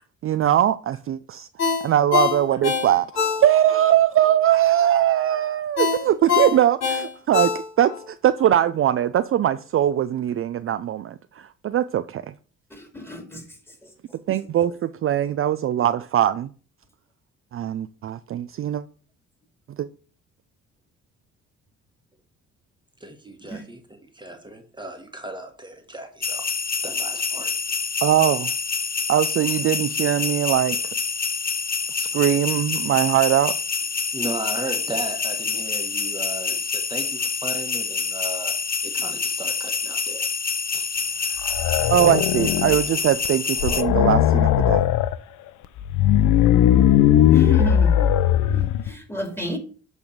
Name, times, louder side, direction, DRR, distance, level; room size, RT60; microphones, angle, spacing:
voice 1, 0.2-1.5 1.8-3.1 3.4-12.3 14.3-16.5 17.5-18.8 19.8-19.9 28.0-28.5 29.1-30.8 31.9-33.6 41.9-44.8, right 11 dB, 45° right, 0.4 m, -21 dB
Ringtone, 1.6-3.8 4.2-4.3 5.8-8.0 8.4-8.5, left 7 dB, 55° left, 4.1 m, -24 dB
voice 2, 12.7-13.4 23.5-23.6 47.3-48.2 48.5-49.6, left 3 dB, 10° left, 2.5 m, -29 dB
voice 3, 23.0-26.5 26.8-27.5 34.1-38.6 38.8-40.2 40.7-40.9, right 2 dB, 15° right, 1.4 m, -36 dB
sound 1, 26.2-43.8, left 5 dB, 30° left, 0.8 m, -27 dB
sound 2, 41.4-42.9 43.2-43.3 43.6-45.2 45.8-48.9, left 10 dB, 85° left, 0.6 m, -18 dB
8.5 x 3.4 x 6.5 m
cardioid pair, 90°, 30 cm